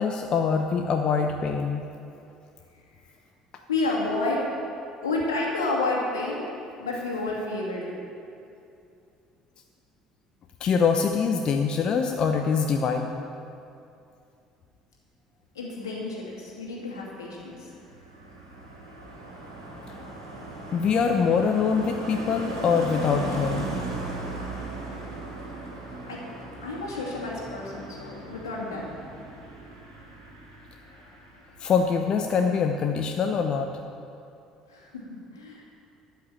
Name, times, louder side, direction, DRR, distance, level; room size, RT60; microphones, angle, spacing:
voice 1, 0.0-1.9 10.6-13.1 20.7-23.7 31.6-33.7, left 6 dB, 45° left, 4 dB, 0.8 m, -24 dB
voice 2, 3.7-4.4 5.0-6.5 6.8-8.0 15.5-17.7 26.0-26.2 26.6-28.9 34.7-35.6, left 2 dB, 80° left, -3 dB, 2.5 m, -30 dB
Car passing by, 17.1-31.9 32.2-32.5, right 2 dB, 90° right, 2.3 m, -37 dB
13.0 x 5.9 x 9.0 m, 2.6 s
figure-of-eight pair, 55°, 2 cm